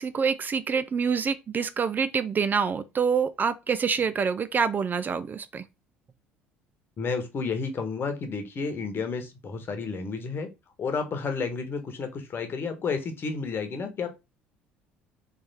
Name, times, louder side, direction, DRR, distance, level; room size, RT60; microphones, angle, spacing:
voice 1, 0.0-5.6, right 6 dB, 30° right, 0.4 m, -26 dB
voice 2, 7.0-10.5 10.8-14.1, left 5 dB, 40° left, 1.1 m, -31 dB
3.4 x 3.3 x 4.1 m
figure-of-eight pair, 60°, 6 cm